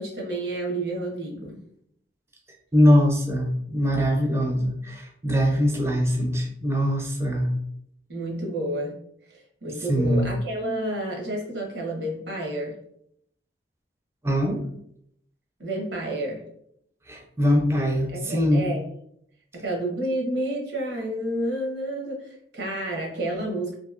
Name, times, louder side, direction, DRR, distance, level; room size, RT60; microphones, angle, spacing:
voice 1, 0.0-1.6 8.1-8.9 9.3-12.8 15.6-16.4 18.1-18.8 19.5-23.8, right 1 dB, 85° right, -1 dB, 0.9 m, -30 dB
voice 2, 2.7-7.5 9.9-10.3 14.2-14.6 17.1-18.7, equal, 15° right, 1 dB, 0.4 m, -22 dB
2.8 x 2.6 x 2.4 m, 0.71 s
head